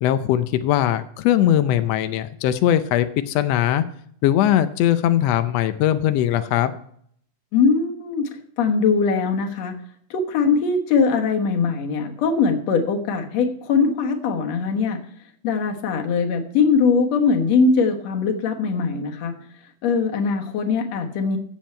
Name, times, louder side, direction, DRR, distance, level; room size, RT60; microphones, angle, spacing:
voice 1, 0.0-3.8 4.2-6.7, left 11 dB, 80° left, 10 dB, 1.4 m, -20 dB
voice 2, 7.5-8.3 8.6-9.8 10.1-15.0 15.4-19.4 19.8-21.4, left 5 dB, 60° left, 4 dB, 2.3 m, -21 dB
15.0 x 7.3 x 4.4 m, 0.64 s
omnidirectional pair, 3.6 m